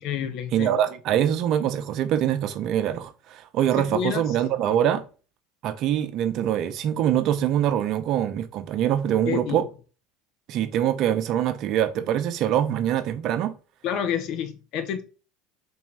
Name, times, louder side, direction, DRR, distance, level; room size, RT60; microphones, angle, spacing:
voice 1, 0.0-0.8 3.9-4.2 9.3-9.6 13.8-15.0, left 8 dB, 60° left, 0.7 m, -29 dB
voice 2, 0.5-5.0 5.6-9.6 10.5-13.6, right 10 dB, 55° right, 0.5 m, -24 dB
4.1 x 2.6 x 3.2 m
hypercardioid pair, 85°, 0 cm